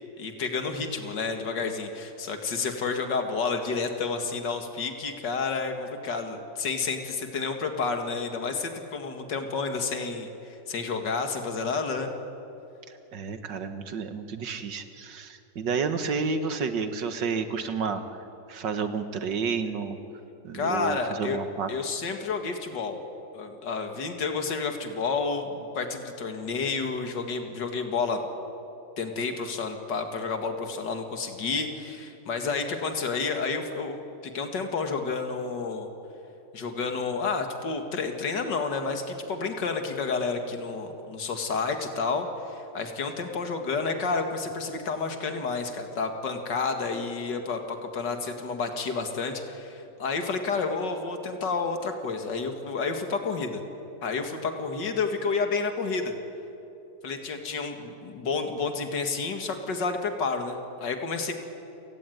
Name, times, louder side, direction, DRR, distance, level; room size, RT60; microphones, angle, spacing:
voice 1, 0.2-10.3 10.7-12.1 20.5-21.4 21.7-23.0 23.3-28.2 29.0-34.0 34.2-35.9 36.5-53.6 54.0-56.1 57.0-61.3, left 4 dB, 75° left, 5 dB, 2.7 m, -30 dB
voice 2, 12.9-18.2 18.5-20.0 20.4-21.7, right 5 dB, 80° right, 8 dB, 2.0 m, -31 dB
29.5 x 17.0 x 9.4 m, 2.8 s
omnidirectional pair, 1.9 m